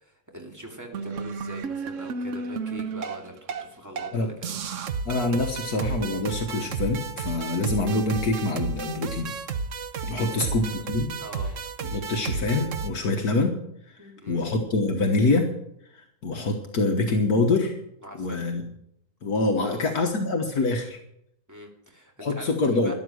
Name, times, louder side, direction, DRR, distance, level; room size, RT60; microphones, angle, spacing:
voice 1, 0.0-4.6 10.2-10.5 11.2-11.6 14.0-14.4 18.0-18.4 19.6-19.9 21.5-22.9, equal, 10° right, 1 dB, 2.5 m, -42 dB
sound 1, 0.9-3.7 4.0-4.1 4.4-12.9, right 5 dB, 55° right, 1.1 m, -32 dB
voice 2, 5.1-9.3 10.1-11.1 11.9-13.5 14.3-15.5 16.2-17.8 18.2-18.6 19.2-21.0 22.2-22.9, left 2 dB, 65° left, 3 dB, 1.8 m, -25 dB
13.0 x 11.0 x 6.2 m, 0.77 s
omnidirectional pair, 1.7 m